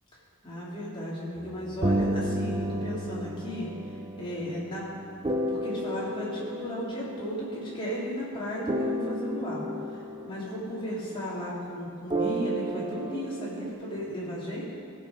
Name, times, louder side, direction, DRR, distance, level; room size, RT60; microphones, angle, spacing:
voice 1, 0.4-3.7 4.2-4.8 5.5-9.6 9.9-14.6, equal, 25° left, -8 dB, 3.2 m, -35 dB
sound 1, 1.4-8.0 8.7-11.4 12.1-13.7, right 1 dB, 20° right, 0.5 m, -32 dB
16.5 x 6.2 x 5.0 m, 2.5 s
head